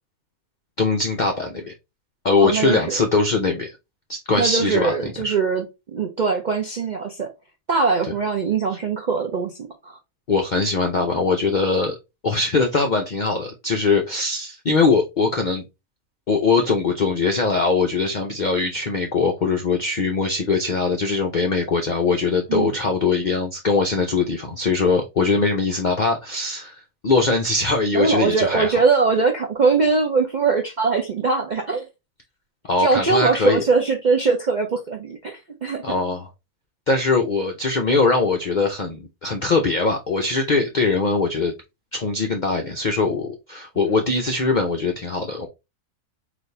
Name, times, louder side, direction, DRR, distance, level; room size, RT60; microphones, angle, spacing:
voice 1, 0.8-1.7 2.2-3.8 4.1-4.9 5.2-5.4 10.3-12.0 12.2-15.7 16.3-26.8 27.0-28.8 32.6-33.6 35.8-36.3 36.9-41.5 41.9-45.5, left 4 dB, 65° left, 0.4 m, -21 dB
voice 2, 2.4-3.0 4.3-5.6 5.9-7.3 7.7-10.0 22.5-22.7 27.9-31.9 32.8-35.8 43.9-44.0, right 4 dB, 60° right, 0.4 m, -21 dB
4.1 x 2.6 x 3.2 m
omnidirectional pair, 1.5 m